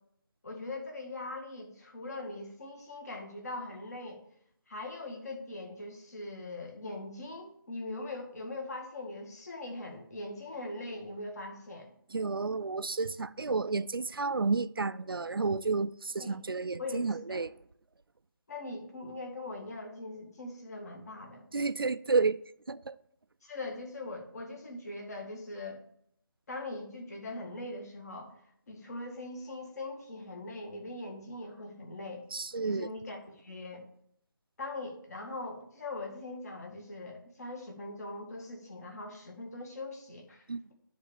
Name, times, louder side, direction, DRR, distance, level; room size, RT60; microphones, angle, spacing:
voice 1, 0.4-4.2 4.7-11.9 16.2-16.4 16.8-17.4 18.5-21.5 23.4-25.8 26.5-28.4 28.7-32.2 32.6-33.8 34.6-40.4, left 2 dB, 45° left, 2.0 m, -41 dB
voice 2, 12.1-17.5 21.5-22.4 22.7-23.0 32.3-32.9 40.5-40.6, right 4 dB, 75° right, 0.4 m, -31 dB
10.0 x 3.7 x 7.2 m
figure-of-eight pair, 155°, 12 cm